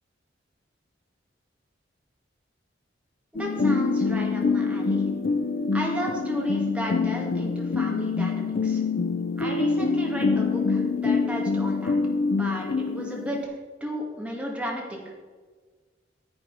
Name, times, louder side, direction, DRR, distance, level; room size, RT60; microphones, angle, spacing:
sound 1, 3.3-13.4, left 4 dB, 55° left, 0.5 m, -25 dB
voice 1, 3.4-5.0 5.7-8.8 9.4-12.0 12.3-13.5 13.8-15.1, equal, 5° right, -2 dB, 2.1 m, -34 dB
10.5 x 8.5 x 4.8 m, 1.4 s
head